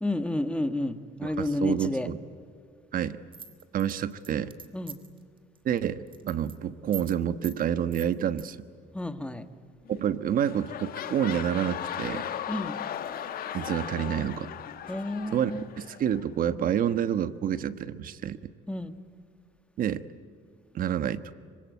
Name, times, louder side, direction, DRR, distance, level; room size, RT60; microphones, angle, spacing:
voice 1, 0.0-2.1 4.7-5.0 8.9-9.4 12.5-12.8 14.9-15.7 18.7-18.9, left 1 dB, 5° left, 9 dB, 1.6 m, -30 dB
voice 2, 1.2-2.2 2.9-3.2 3.7-4.5 5.6-8.7 9.9-12.3 13.5-14.5 15.3-18.4 19.8-20.0 20.7-21.2, right 9 dB, 55° right, 13 dB, 1.3 m, -28 dB
sound 1, 3.3-5.2 5.6-5.8 6.1-6.6 6.9-7.2 7.4-7.6 7.9-8.4, right 6 dB, 30° right, 2.7 m, -42 dB
sound 2, 9.9-10.1 10.4-16.2 16.9-17.0, left 9 dB, 60° left, 1.9 m, -37 dB
25.5 x 24.5 x 9.4 m, 2.2 s
cardioid pair, 110°, 17 cm